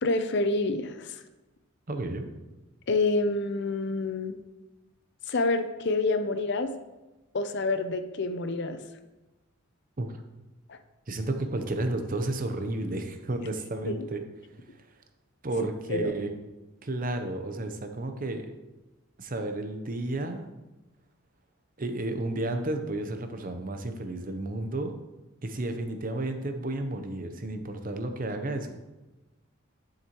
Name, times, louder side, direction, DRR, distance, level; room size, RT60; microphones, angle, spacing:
voice 1, 0.0-1.2 2.9-4.4 5.3-6.7 7.3-8.8 10.7-10.8 13.9-14.1 15.9-16.1, left 3 dB, 55° left, 9 dB, 0.6 m, -27 dB
voice 2, 1.9-2.3 10.0-10.1 11.1-14.2 15.4-16.3 16.8-18.5 19.2-20.5 21.8-24.9 25.4-28.8, right 2 dB, 40° right, 6 dB, 0.7 m, -32 dB
10.5 x 6.7 x 3.0 m, 1.1 s
head